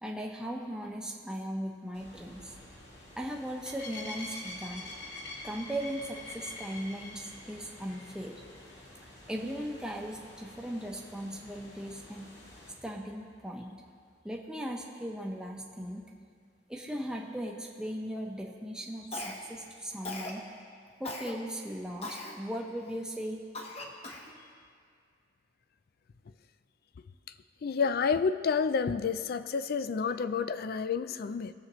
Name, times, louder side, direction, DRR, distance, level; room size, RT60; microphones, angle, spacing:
voice 1, 0.0-2.6 3.2-4.9 5.4-8.3 9.3-12.3 12.8-13.8 14.2-16.0 16.7-20.4 21.0-23.4, equal, 5° right, -1 dB, 0.9 m, -38 dB
sound 1, 1.9-12.7, left 2 dB, 80° left, 2.0 m, -47 dB
Cough, 19.1-19.6 20.0-20.4 21.0-21.3 22.0-22.4 22.9-23.0 23.5-24.3, left 2 dB, 35° left, 1.0 m, -39 dB
voice 2, 27.6-31.5, left 5 dB, 55° left, 12 dB, 0.4 m, -29 dB
20.0 x 7.4 x 3.1 m, 2.2 s
head